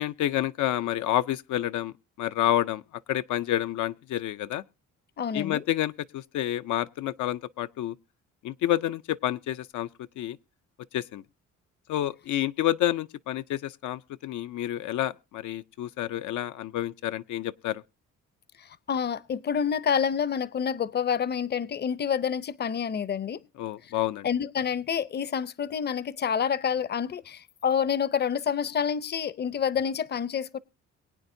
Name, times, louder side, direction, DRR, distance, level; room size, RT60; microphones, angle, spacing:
voice 1, 0.0-4.6 5.3-8.0 8.4-9.9 10.2-10.4 10.9-11.2 11.9-17.8 23.6-24.3, left 13 dB, 75° left, 0.6 m, -29 dB
voice 2, 5.2-5.6 18.9-23.4 24.2-30.6, left 7 dB, 35° left, 0.6 m, -28 dB
23.0 x 8.8 x 2.6 m
cardioid pair, 90°, 30 cm